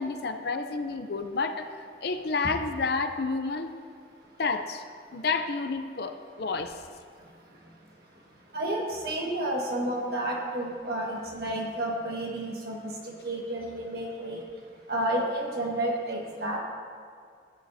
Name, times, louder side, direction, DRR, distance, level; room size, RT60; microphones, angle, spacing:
voice 1, 0.0-1.7 2.0-3.7 4.4-4.8 5.1-6.8, left 4 dB, 55° left, 7 dB, 0.6 m, -30 dB
voice 2, 8.5-14.4 14.9-16.6, right 1 dB, 55° right, -2 dB, 1.7 m, -31 dB
16.0 x 8.5 x 2.8 m, 2.2 s
head